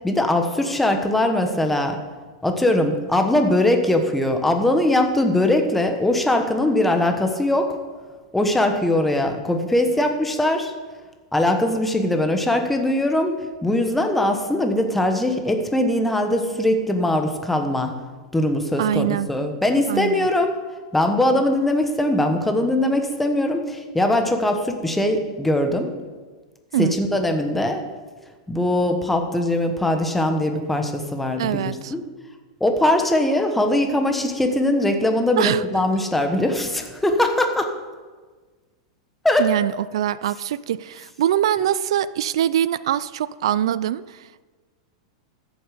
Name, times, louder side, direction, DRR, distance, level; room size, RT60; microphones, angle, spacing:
voice 1, 0.0-2.0 2.4-7.8 8.3-10.7 11.3-13.3 13.6-17.9 18.3-20.6 20.9-25.9 26.8-27.8 28.5-32.0 32.6-37.7 39.2-39.5, left 1 dB, 5° left, 5 dB, 1.2 m, -21 dB
voice 2, 18.8-19.3 19.9-20.3 26.7-26.9 31.4-31.9 35.4-35.6 39.4-44.4, right 11 dB, 75° right, 18 dB, 0.4 m, -23 dB
14.0 x 8.2 x 5.1 m, 1.4 s
supercardioid pair, 150°, 3 cm